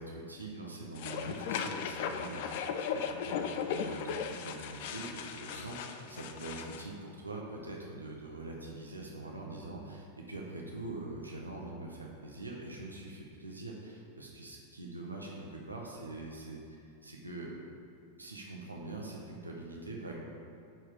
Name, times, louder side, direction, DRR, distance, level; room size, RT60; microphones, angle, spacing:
voice 1, 0.0-16.8 17.0-17.6 18.2-20.2, right 2 dB, 85° right, -2 dB, 1.2 m, -44 dB
sound 1, 0.9-6.9, left 7 dB, 50° left, 0.5 m, -37 dB
10.0 x 4.7 x 4.7 m, 2.5 s
figure-of-eight pair, 90°, 0 cm